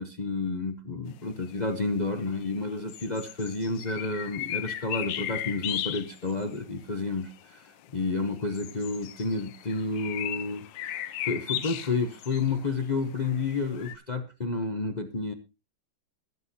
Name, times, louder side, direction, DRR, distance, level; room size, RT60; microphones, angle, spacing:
voice 1, 0.0-15.3, left 3 dB, 55° left, 7 dB, 0.4 m, -30 dB
sound 1, 1.4-1.5 2.1-2.5 2.9-6.6 7.3-7.4 8.2-14.0, left 12 dB, 75° left, 1.4 m, -36 dB
21.5 x 8.1 x 2.8 m, 0.28 s
omnidirectional pair, 2.1 m